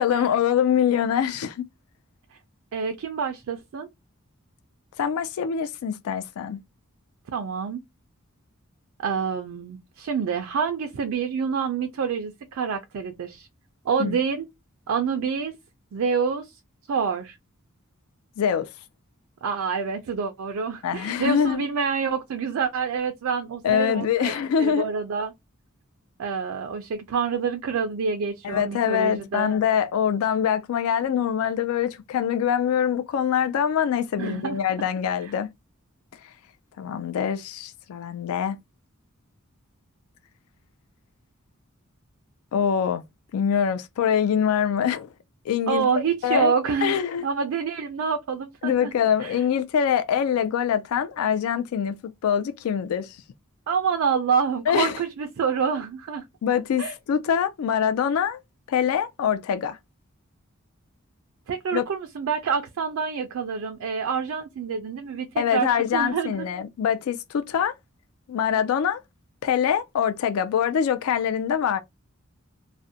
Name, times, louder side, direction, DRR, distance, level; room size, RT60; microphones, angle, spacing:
voice 1, 0.0-1.7 5.0-6.6 14.0-14.2 18.4-18.7 20.8-21.6 23.6-24.9 28.4-35.5 36.8-38.6 42.5-43.0 43.3-45.1 45.5-45.9 46.2-46.5 46.8-47.2 48.6-52.0 52.2-53.2 54.7-54.9 56.4-58.4 58.7-59.8 61.7-61.8 65.4-67.7 68.3-69.0 69.4-71.8, left 8 dB, 80° left, 0.3 m, -24 dB
voice 2, 2.7-3.9 7.3-7.8 9.0-13.5 13.9-14.5 14.9-15.5 15.9-16.6 16.9-17.4 19.4-25.3 26.2-29.5 34.2-34.6 35.2-35.3 45.7-48.9 49.2-49.4 53.7-56.2 56.8-56.9 61.5-66.5, right 6 dB, 70° right, 0.4 m, -27 dB
2.4 x 2.1 x 2.6 m
head